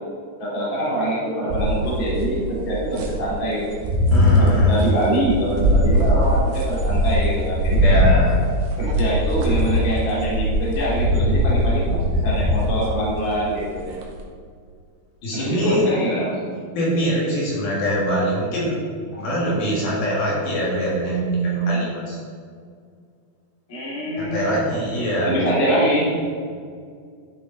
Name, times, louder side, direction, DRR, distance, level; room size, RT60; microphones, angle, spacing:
voice 1, 0.4-3.8 4.4-8.0 8.8-13.9 15.3-16.3 19.1-19.2 23.7-24.6 25.3-26.1, right 1 dB, 30° left, -6 dB, 2.7 m, -24 dB
sound 1, 1.5-3.3 3.7-4.6 5.2-13.3 13.8-14.2, equal, 65° right, 2.4 m, -20 dB
voice 2, 4.1-4.9 7.8-8.4 15.2-15.9 16.7-18.8 19.2-22.2 24.2-25.4, right 1 dB, 60° left, -6 dB, 3.8 m, -23 dB
12.5 x 6.8 x 3.9 m, 2.1 s
omnidirectional pair, 5.1 m